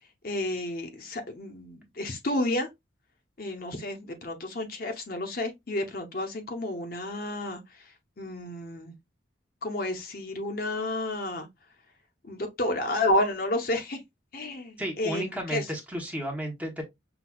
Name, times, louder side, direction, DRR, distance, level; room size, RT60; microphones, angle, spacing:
voice 1, 0.2-2.7 3.4-7.9 8.2-8.9 9.6-11.5 12.2-14.0 14.3-15.7, left 1 dB, 50° left, 0.8 m, -31 dB
voice 2, 14.8-16.8, equal, 10° right, 0.9 m, -33 dB
5.8 x 2.3 x 2.3 m
head